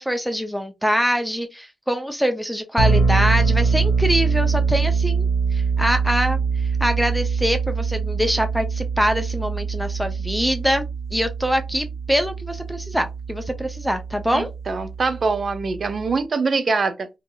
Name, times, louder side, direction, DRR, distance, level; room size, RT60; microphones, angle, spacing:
voice 1, 0.0-10.8 11.1-14.5, equal, ahead, 0.5 m, -24 dB
sound 1, 2.8-16.2, right 5 dB, 75° left, 0.5 m, -24 dB
voice 2, 14.3-17.1, right 4 dB, 50° right, 0.5 m, -24 dB
2.6 x 2.5 x 2.4 m
supercardioid pair, 45°, 0 cm